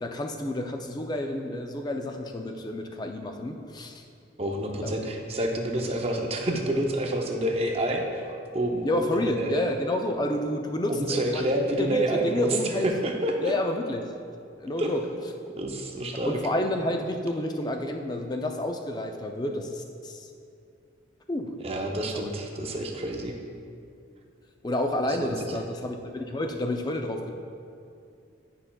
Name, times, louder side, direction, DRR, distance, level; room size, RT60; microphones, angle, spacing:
voice 1, 0.0-4.0 4.8-5.0 8.8-11.4 11.8-12.9 13.4-14.1 14.6-15.0 16.3-20.3 21.3-21.6 22.1-22.3 24.6-27.3, left 1 dB, 20° left, 4 dB, 0.4 m, -29 dB
voice 2, 4.4-9.7 10.9-13.5 14.8-14.9 15.6-16.4 21.6-23.4 25.1-25.6, right 1 dB, 30° right, 2 dB, 0.5 m, -28 dB
11.0 x 5.5 x 2.3 m, 2.5 s
head